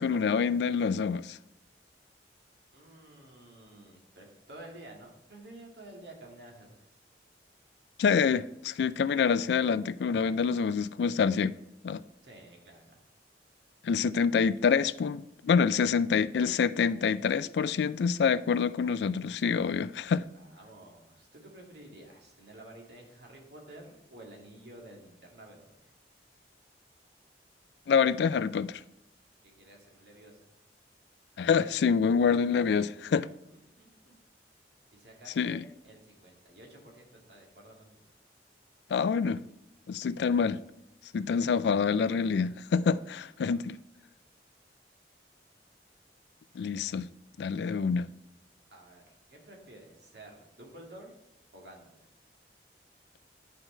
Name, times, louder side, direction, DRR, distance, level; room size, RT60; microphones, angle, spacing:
voice 1, 0.0-1.4 8.0-11.5 11.8-12.0 13.8-20.2 27.9-28.8 31.4-33.3 35.4-35.6 38.9-39.4 39.9-40.6 41.1-43.8 46.6-47.1 47.4-48.1, left 6 dB, 75° left, 0.3 m, -26 dB
voice 2, 2.7-7.0 12.2-13.0 20.3-25.9 29.4-30.4 33.5-34.1 34.9-38.0 43.1-43.5 48.7-51.2 51.5-52.1, right 1 dB, 70° right, 2.2 m, -51 dB
11.0 x 4.7 x 4.4 m
head